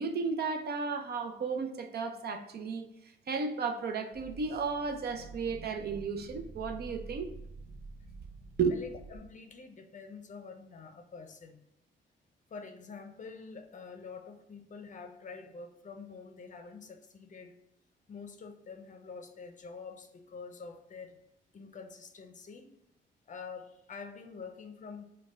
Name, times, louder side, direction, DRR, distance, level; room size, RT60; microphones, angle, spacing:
voice 1, 0.0-2.8 3.3-7.3 8.6-8.8, right 5 dB, 55° right, 7 dB, 0.6 m, -33 dB
sound 1, 4.1-9.2, right 3 dB, 25° right, 1.3 m, -48 dB
voice 2, 8.7-11.6 12.5-17.6 18.1-21.2 21.5-22.8 23.3-25.0, left 5 dB, 40° left, 6 dB, 0.6 m, -47 dB
5.1 x 2.3 x 3.6 m, 0.85 s
cardioid pair, 90°, 20 cm